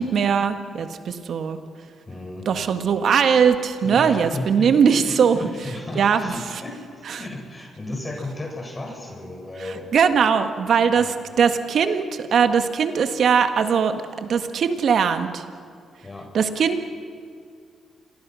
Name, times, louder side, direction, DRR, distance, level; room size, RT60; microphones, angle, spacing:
voice 1, 0.0-1.6 2.4-5.4 6.0-6.2 9.9-15.4 16.3-16.9, right 6 dB, 65° right, 8 dB, 1.7 m, -20 dB
voice 2, 2.1-2.5 3.8-9.9 10.9-11.1 16.0-16.4, left 2 dB, 30° left, 0 dB, 7.6 m, -34 dB
29.0 x 23.0 x 6.4 m, 2.2 s
supercardioid pair, 55°, 0 cm